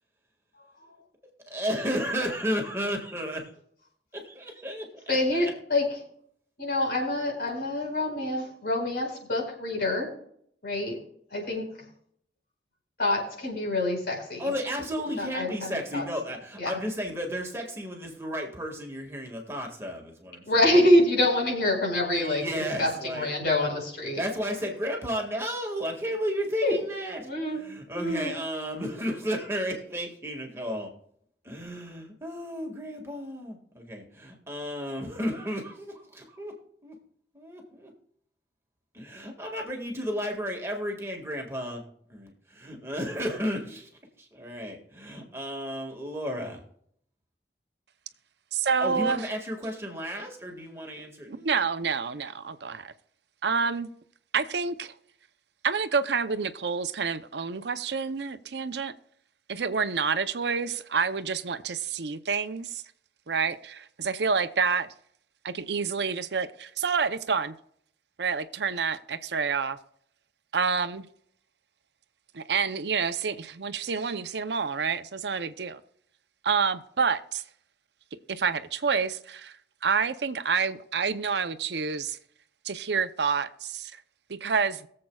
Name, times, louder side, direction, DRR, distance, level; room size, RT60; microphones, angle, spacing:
voice 1, 1.5-3.5 4.1-5.5 14.4-20.6 22.2-23.3 24.2-27.3 27.5-30.9 31.4-36.6 36.8-37.0 37.3-37.9 38.9-41.8 42.1-42.3 42.7-43.9 44.2-46.6 48.8-51.4, equal, 15° right, 1.9 m, -33 dB
voice 2, 5.1-5.9 6.6-10.1 10.6-11.0 11.3-11.7 13.0-14.4 15.2-16.0 16.6-16.8 20.5-22.5 22.8-24.2 26.6-26.8 27.2-27.6 27.9-28.3, left 1 dB, 65° left, 4.6 m, -26 dB
voice 3, 48.5-49.3 51.3-52.9 53.4-53.9 54.3-54.9 55.6-58.9 59.5-62.8 63.3-64.9 65.4-67.5 68.2-69.8 70.5-71.1 72.3-75.8 76.4-77.4 78.3-79.6 79.8-82.2 82.6-83.9 84.3-84.9, right 5 dB, 75° right, 0.6 m, -28 dB
22.0 x 7.6 x 2.3 m
head